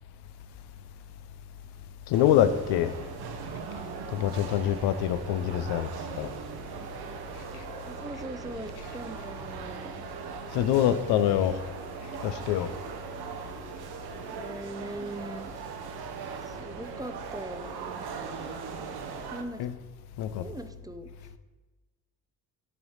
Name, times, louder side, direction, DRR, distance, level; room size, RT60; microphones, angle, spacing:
voice 1, 2.1-3.0 4.1-5.9 6.1-6.3 7.5-7.6 10.5-11.6 12.2-12.7 19.6-19.8 20.2-20.5, left 11 dB, 90° left, 0.5 m, -25 dB
sound 1, 2.1-19.4, right 6 dB, 70° right, 0.8 m, -40 dB
voice 2, 7.8-10.0 14.3-15.5 16.5-18.5 19.3-19.7 20.4-21.1, right 1 dB, 10° right, 0.5 m, -41 dB
8.1 x 3.1 x 5.5 m
cardioid pair, 70°, 39 cm